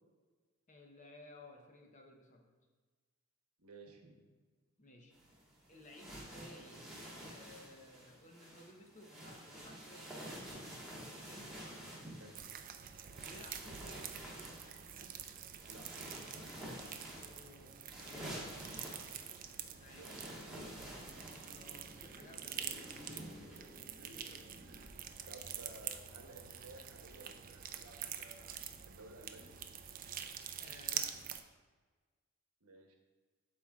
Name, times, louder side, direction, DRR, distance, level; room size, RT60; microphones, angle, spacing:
voice 1, 0.7-2.5 4.8-5.1 5.6-6.9 7.3-10.5 10.9-11.5 13.2-14.5 17.2-18.4 19.8-20.1 21.5-23.5 30.6-31.2, left 1 dB, 35° left, 2 dB, 0.8 m, -57 dB
voice 2, 3.6-4.1 12.2-12.4 15.7-15.9 19.9-21.0 23.9-24.3 24.6-24.9 25.2-29.5 32.6-33.0, right 2 dB, 85° right, 3 dB, 1.0 m, -56 dB
sound 1, 5.1-23.6, right 1 dB, ahead, 1.5 m, -50 dB
sound 2, 12.3-31.4, right 9 dB, 40° right, 0.3 m, -46 dB
sound 3, 17.8-30.6, left 1 dB, 15° left, 1.5 m, -60 dB
11.5 x 4.3 x 2.4 m, 1.4 s
head